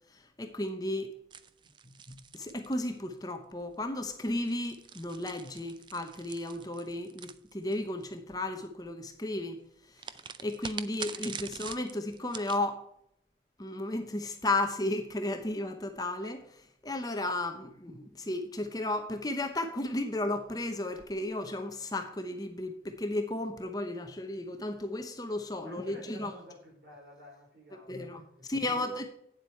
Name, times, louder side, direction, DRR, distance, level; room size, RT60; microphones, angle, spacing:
voice 1, 0.1-1.1 2.1-9.6 9.9-12.8 13.6-26.3 27.9-29.1, left 2 dB, 20° left, 0.9 m, -34 dB
sound 1, 1.3-3.3 4.3-8.0 10.0-12.6, right 7 dB, 25° right, 0.4 m, -44 dB
voice 2, 1.6-1.9 11.1-11.2 25.6-29.0, left 1 dB, 60° right, 4.7 m, -52 dB
9.4 x 7.5 x 4.5 m
head